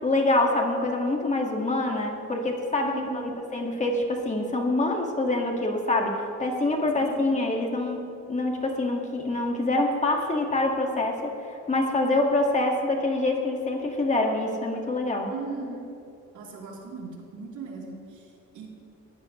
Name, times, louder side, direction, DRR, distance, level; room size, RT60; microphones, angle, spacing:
voice 1, 0.0-6.1 6.4-8.0 8.3-15.3, left 2 dB, 25° left, 1 dB, 1.8 m, -25 dB
voice 2, 2.9-3.5 7.0-7.2 15.3-15.8 16.3-18.7, right 4 dB, 90° right, -2 dB, 3.2 m, -38 dB
19.5 x 15.0 x 3.1 m, 2.7 s
cardioid pair, 145°, 29 cm